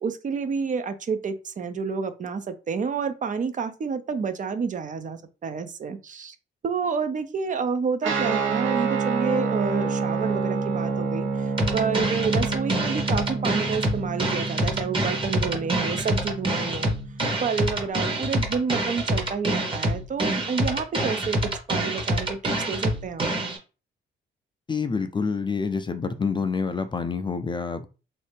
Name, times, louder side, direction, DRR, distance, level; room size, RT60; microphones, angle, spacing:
voice 1, 0.0-6.3 6.6-17.0 17.4-21.4 21.7-23.3, right 5 dB, 40° right, 10 dB, 0.5 m, -29 dB
Guitar, 8.0-17.9, right 4 dB, 80° right, 1.1 m, -28 dB
sound 1, 11.6-23.6, right 1 dB, 25° right, 1.0 m, -26 dB
voice 2, 24.7-27.9, left 5 dB, 25° left, 9 dB, 0.4 m, -27 dB
3.1 x 2.7 x 3.3 m, 0.32 s
cardioid pair, 90°, 20 cm